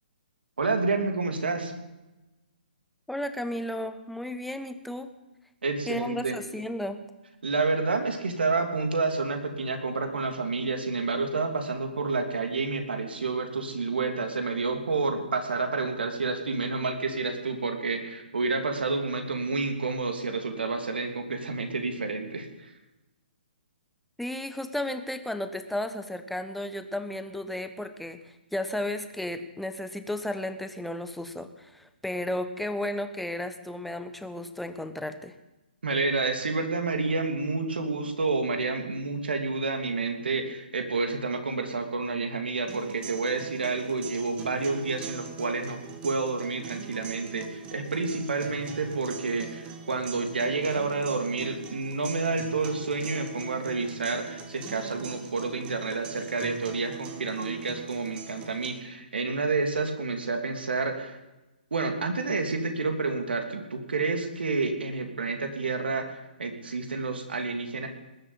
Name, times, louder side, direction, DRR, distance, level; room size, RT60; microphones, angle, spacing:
voice 1, 0.6-1.7 5.6-6.4 7.4-22.7 35.8-61.2 61.7-67.9, right 3 dB, 75° right, 5 dB, 3.0 m, -29 dB
voice 2, 3.1-5.1 5.9-7.0 24.2-28.2 28.5-35.3, left 1 dB, ahead, 9 dB, 1.1 m, -33 dB
sound 1, 42.7-58.7, right 6 dB, 20° right, 1.9 m, -42 dB
19.5 x 8.0 x 8.8 m, 1.0 s
hypercardioid pair, 135°, 5 cm